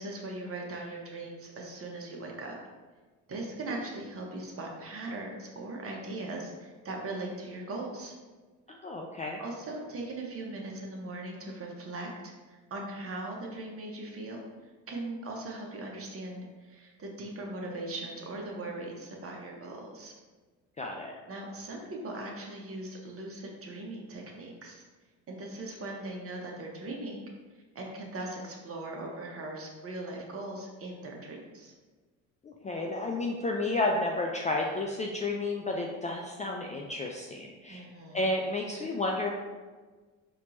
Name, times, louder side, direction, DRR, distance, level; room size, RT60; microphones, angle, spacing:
voice 1, 0.0-2.6 3.3-8.1 9.4-14.4 14.9-20.1 21.3-24.8 25.3-27.3 27.7-31.7 37.7-38.2, right 2 dB, 35° right, 0 dB, 1.0 m, -39 dB
voice 2, 8.7-9.4 20.8-21.1 32.4-37.9 38.1-39.3, left 2 dB, 20° left, 0 dB, 0.3 m, -31 dB
4.3 x 3.0 x 2.7 m, 1.4 s
supercardioid pair, 70°, 38 cm